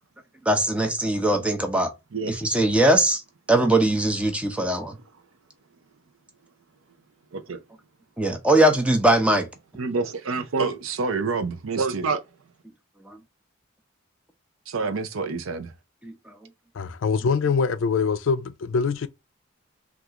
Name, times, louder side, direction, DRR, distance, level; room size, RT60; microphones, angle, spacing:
voice 1, 0.5-1.9 2.3-3.2 3.5-5.0 8.2-9.5 13.1-13.2 16.0-16.1, right 1 dB, 5° right, 0.6 m, -21 dB
voice 2, 7.3-7.6 9.8-12.2 14.7-15.7, right 4 dB, 90° right, 0.6 m, -27 dB
voice 3, 16.7-19.1, left 5 dB, 70° left, 0.4 m, -24 dB
3.6 x 2.4 x 2.8 m
head